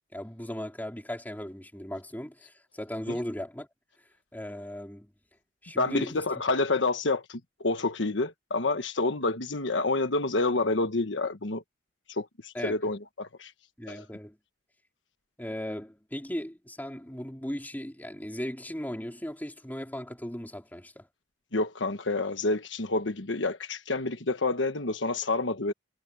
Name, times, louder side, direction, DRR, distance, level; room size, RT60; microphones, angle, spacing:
voice 1, 0.1-3.7 4.3-5.1 5.6-6.2 12.5-12.9 13.8-14.4 15.4-21.1, equal, 10° left, 3.8 m, -37 dB
voice 2, 5.8-11.6 12.1-13.5 13.9-14.0 21.5-25.7, left 3 dB, 80° left, 1.3 m, -28 dB
head